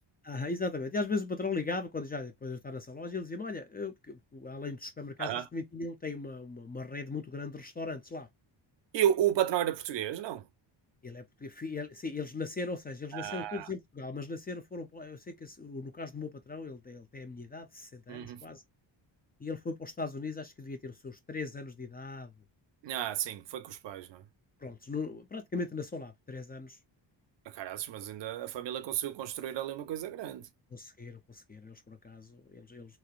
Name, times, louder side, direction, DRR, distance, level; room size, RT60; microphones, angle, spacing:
voice 1, 0.2-8.3 11.0-18.6 19.4-22.3 24.6-26.8 30.7-33.0, left 3 dB, 20° left, 0.4 m, -38 dB
voice 2, 8.9-10.5 13.1-13.7 18.1-18.4 22.8-24.2 27.5-30.5, right 11 dB, 70° right, 0.6 m, -32 dB
3.0 x 2.9 x 2.3 m
cardioid pair, 125°, 45 cm